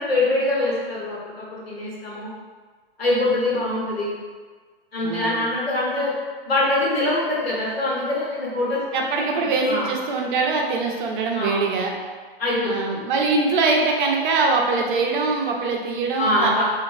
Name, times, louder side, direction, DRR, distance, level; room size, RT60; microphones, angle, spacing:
voice 1, 0.0-2.3 3.0-4.1 4.9-6.1 6.4-9.9 11.3-11.8 12.4-13.0 16.2-16.6, left 2 dB, 80° left, -6 dB, 1.2 m, -24 dB
voice 2, 5.0-5.4 8.9-11.9 12.6-16.6, right 3 dB, 55° right, 1 dB, 0.6 m, -23 dB
2.7 x 2.5 x 2.6 m, 1.5 s
hypercardioid pair, 115°, 30 cm